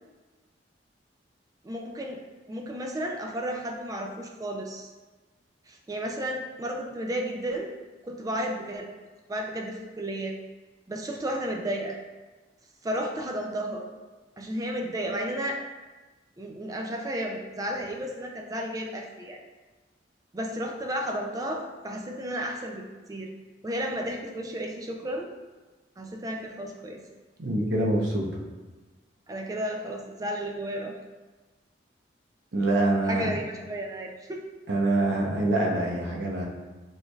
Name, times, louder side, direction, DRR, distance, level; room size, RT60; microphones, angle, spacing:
voice 1, 1.6-4.9 5.7-7.7 8.0-8.9 9.3-10.3 10.9-12.0 12.8-13.8 14.4-15.6 16.4-19.4 20.3-23.3 23.6-25.3 26.0-27.0 29.3-30.9 33.1-34.4, right 1 dB, 20° right, 2 dB, 0.3 m, -33 dB
voice 2, 27.4-28.4 32.5-33.3 34.7-36.5, right 2 dB, 75° right, -1 dB, 0.8 m, -25 dB
6.4 x 3.2 x 2.3 m, 1.2 s
head